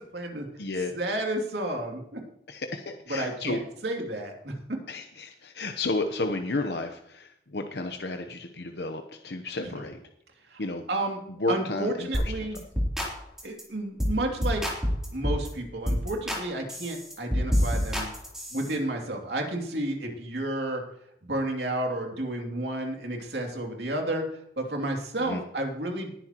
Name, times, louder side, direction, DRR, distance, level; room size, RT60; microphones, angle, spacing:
voice 1, 0.0-0.5 0.9-2.2 3.1-4.6 10.5-10.6 10.9-11.2 11.5-12.6 13.4-14.6 15.1-18.1 18.5-20.8 21.3-26.1, right 1 dB, 65° right, 2 dB, 2.7 m, -31 dB
voice 2, 0.6-0.9 2.5-3.6 4.9-10.0 10.6-10.8 11.4-12.3 25.2-25.4, left 2 dB, 65° left, 5 dB, 0.9 m, -32 dB
sound 1, 12.1-12.3 12.5-13.1 13.4-13.6 14.0-14.2 14.4-15.5 15.9-16.4 16.7-18.7, equal, 5° right, 3.2 m, -27 dB
19.5 x 10.0 x 3.0 m, 0.74 s
head